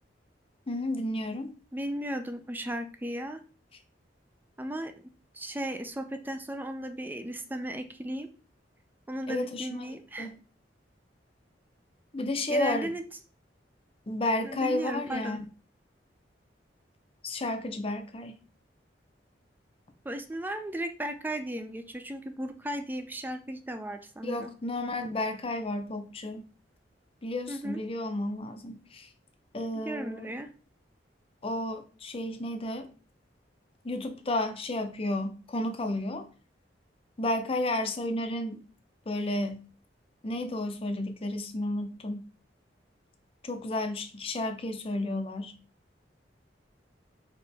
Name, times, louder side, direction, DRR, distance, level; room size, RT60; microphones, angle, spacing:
voice 1, 0.7-1.5 9.3-9.9 10.2-10.4 12.1-12.9 14.1-15.4 17.2-18.3 24.2-26.4 27.2-29.1 29.5-30.3 31.4-32.9 33.8-36.3 37.2-38.6 39.1-39.6 40.2-42.3 43.4-45.5, left 1 dB, 35° left, 6 dB, 0.6 m, -32 dB
voice 2, 1.7-3.4 4.6-4.9 5.3-8.3 9.1-10.3 12.5-13.0 14.4-15.4 20.0-24.5 27.5-27.8 29.7-30.5, right 1 dB, 10° right, 8 dB, 0.4 m, -35 dB
4.3 x 3.0 x 3.4 m, 0.37 s
head